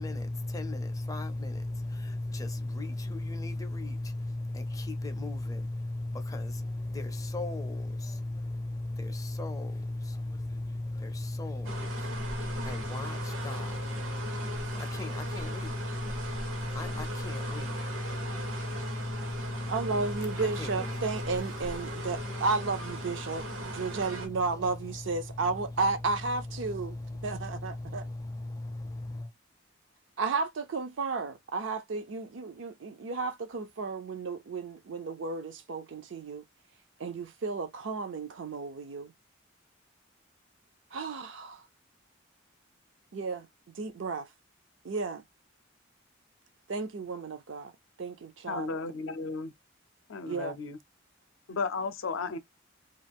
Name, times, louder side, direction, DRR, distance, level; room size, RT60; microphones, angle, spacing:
voice 1, 0.0-29.3, left 2 dB, 15° left, 0.5 m, -36 dB
sound 1, 11.6-24.3, right 1 dB, 85° right, 1.0 m, -40 dB
voice 2, 19.7-27.0 27.2-28.1 30.2-36.4 37.0-39.1 40.9-41.6 43.1-43.5 43.7-44.3 44.8-45.2 46.7-47.7 48.0-48.7 50.3-50.6, right 4 dB, 65° right, 0.4 m, -33 dB
voice 3, 48.5-49.5 50.1-50.8 51.5-52.4, left 4 dB, 75° left, 0.5 m, -34 dB
2.4 x 2.3 x 3.3 m
head